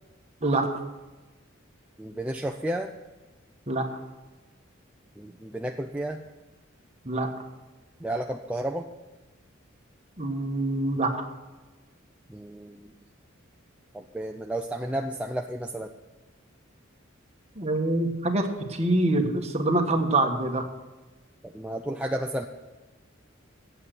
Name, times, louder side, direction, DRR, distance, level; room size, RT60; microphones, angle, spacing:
voice 1, 2.0-2.9 5.2-6.2 8.0-8.9 12.3-12.9 13.9-15.9 21.4-22.5, right 1 dB, 5° right, 2 dB, 0.4 m, -32 dB
voice 2, 10.2-11.2 17.6-20.7, right 2 dB, 30° right, 4 dB, 1.3 m, -25 dB
8.3 x 8.0 x 8.9 m, 1.2 s
head